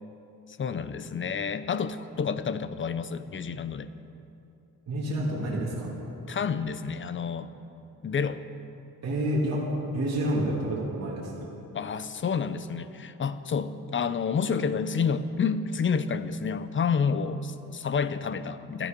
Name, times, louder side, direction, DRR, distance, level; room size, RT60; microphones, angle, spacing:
voice 1, 0.6-3.9 6.3-7.5 8.0-8.4 11.7-18.9, left 6 dB, 35° left, 13 dB, 0.6 m, -29 dB
voice 2, 4.9-6.0 9.0-9.6 9.9-11.4, right 1 dB, 45° right, -5 dB, 2.8 m, -28 dB
16.5 x 13.0 x 5.3 m, 2.9 s
wide cardioid pair, 140°, 35 cm